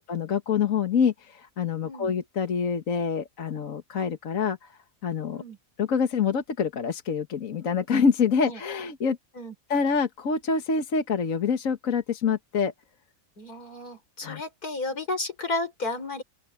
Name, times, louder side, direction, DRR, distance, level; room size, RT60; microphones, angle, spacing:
voice 1, 0.0-4.7 5.0-5.4 5.8-9.2 9.7-12.7 14.2-14.4, left 6 dB, 65° left, 1.7 m, -26 dB
voice 2, 13.4-16.2, left 2 dB, 90° left, 5.6 m, -33 dB
open air
omnidirectional pair, 1.6 m